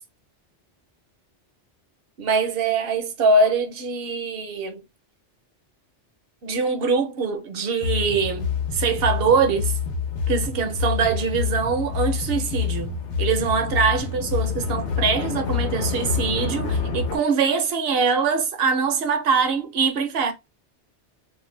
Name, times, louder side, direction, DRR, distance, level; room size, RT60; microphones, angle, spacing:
voice 1, 2.2-4.8 6.4-9.7 10.3-12.9 13.2-20.3, right 4 dB, 65° right, 0.8 m, -23 dB
sound 1, 7.8-17.2, left 6 dB, 80° left, 0.9 m, -27 dB
2.5 x 2.1 x 3.1 m
omnidirectional pair, 1.2 m